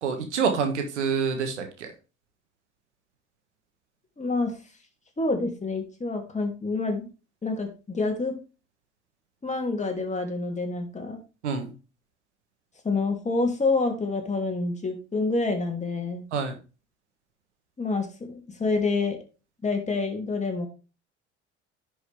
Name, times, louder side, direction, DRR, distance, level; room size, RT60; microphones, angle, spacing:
voice 1, 0.0-1.9 11.4-11.7 16.3-16.5, right 6 dB, 85° right, 6 dB, 1.5 m, -27 dB
voice 2, 4.2-4.6 5.2-7.1 7.4-8.3 9.4-11.2 12.8-16.2 17.8-19.2 19.6-20.7, left 3 dB, 20° left, 3 dB, 2.8 m, -27 dB
10.5 x 5.4 x 3.5 m, 0.33 s
hypercardioid pair, 60°, 34 cm